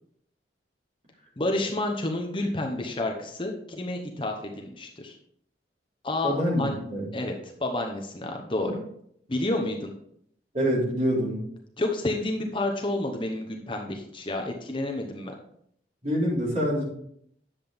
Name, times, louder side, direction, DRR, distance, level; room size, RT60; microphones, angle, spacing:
voice 1, 1.4-5.1 6.0-6.8 7.1-7.3 7.6-8.7 9.3-9.9 11.8-15.3, left 2 dB, 30° left, 3 dB, 0.9 m, -30 dB
voice 2, 6.2-7.1 8.6-8.7 10.5-11.4 16.0-16.8, equal, 40° right, -5 dB, 3.7 m, -26 dB
10.0 x 7.4 x 3.5 m, 0.69 s
head